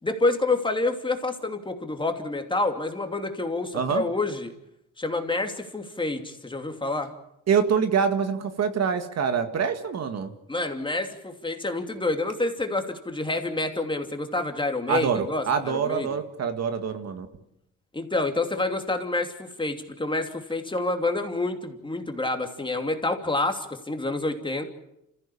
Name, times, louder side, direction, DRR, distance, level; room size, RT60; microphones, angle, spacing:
voice 1, 0.0-4.5 5.0-7.1 10.5-16.2 17.9-24.6, left 2 dB, 15° left, 5 dB, 2.8 m, -28 dB
voice 2, 3.7-4.0 7.5-10.3 14.9-17.3, right 6 dB, 60° right, 8 dB, 2.0 m, -25 dB
27.5 x 15.0 x 8.6 m, 0.85 s
cardioid pair, 90°, 30 cm